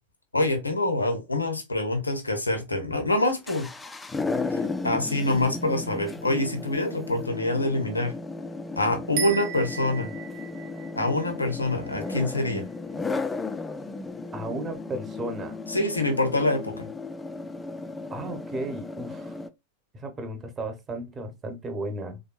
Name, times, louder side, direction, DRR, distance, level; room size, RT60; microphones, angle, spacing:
voice 1, 0.3-3.7 4.5-8.1 8.8-10.1 11.0-12.7 15.7-16.9, left 2 dB, 80° left, 0.8 m, -26 dB
sound 1, 3.2-19.5, left 3 dB, 10° left, 0.3 m, -35 dB
sound 2, 9.2-12.6, right 9 dB, 50° right, 0.7 m, -37 dB
voice 2, 14.3-15.6 18.1-19.3 19.9-22.2, right 2 dB, 20° right, 0.9 m, -34 dB
3.4 x 2.6 x 2.3 m
figure-of-eight pair, 90°, 0 cm